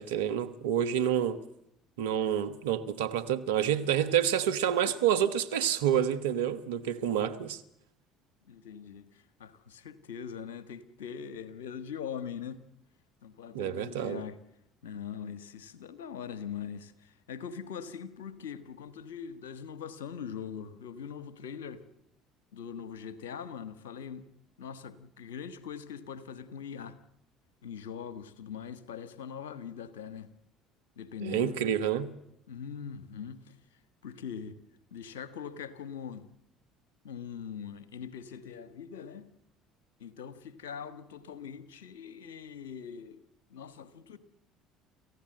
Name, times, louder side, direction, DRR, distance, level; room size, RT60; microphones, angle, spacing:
voice 1, 0.0-1.4 2.0-7.6 13.5-14.2 31.2-32.1, right 9 dB, 80° right, 1.2 m, -28 dB
voice 2, 8.4-12.6 13.2-14.4 14.8-21.8 22.5-24.3 24.6-27.0 27.6-30.3 31.0-31.5 32.5-33.6 34.0-34.6 34.9-36.3 37.0-39.3 40.0-43.2 43.5-44.2, left 7 dB, 85° left, 1.3 m, -42 dB
28.5 x 15.0 x 7.9 m
hypercardioid pair, 65°, 0 cm